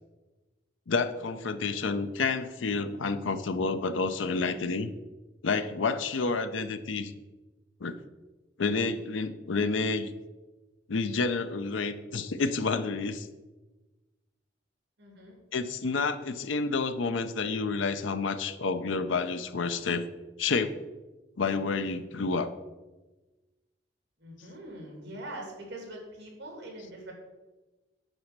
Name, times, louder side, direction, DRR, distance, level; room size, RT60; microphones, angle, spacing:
voice 1, 0.9-4.9 5.4-7.1 7.8-7.9 8.6-10.1 10.9-13.3 15.5-20.1 20.4-20.8 21.4-22.5, left 4 dB, 85° left, 11 dB, 0.6 m, -29 dB
voice 2, 15.0-15.4 24.2-27.1, right 1 dB, 60° right, 0 dB, 2.7 m, -43 dB
9.0 x 4.3 x 6.5 m, 1.2 s
head